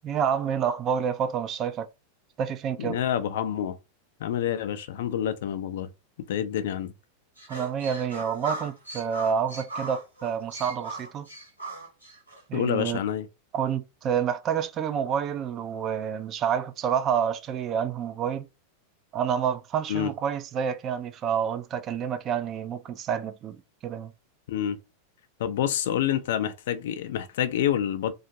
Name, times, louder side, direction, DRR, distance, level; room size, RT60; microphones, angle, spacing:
voice 1, 0.0-1.9 2.4-3.0 7.5-11.3 12.5-13.0 13.5-18.5 19.1-24.1, right 8 dB, 30° right, 0.3 m, -28 dB
voice 2, 2.8-3.8 4.2-5.9 6.3-6.9 12.5-13.3 19.9-20.1 24.5-24.8 25.4-28.1, left 10 dB, 55° left, 0.4 m, -27 dB
sound 1, 7.4-12.4, right 2 dB, 90° right, 1.0 m, -38 dB
2.4 x 2.3 x 2.6 m
figure-of-eight pair, 90°, 0 cm